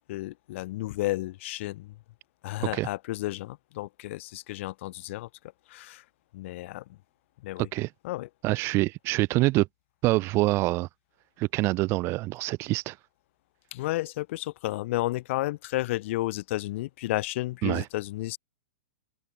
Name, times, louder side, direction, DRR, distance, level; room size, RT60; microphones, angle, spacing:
voice 1, 0.1-2.0 2.4-5.3 5.7-6.0 6.3-7.0 7.4-7.7 8.0-8.3 13.7-18.4, left 17 dB, 45° left, 1.6 m, -32 dB
voice 2, 8.4-9.7 10.0-10.9 11.4-13.0 17.6-17.8, right 20 dB, 30° right, 0.4 m, -25 dB
open air
figure-of-eight pair, 105°, 9 cm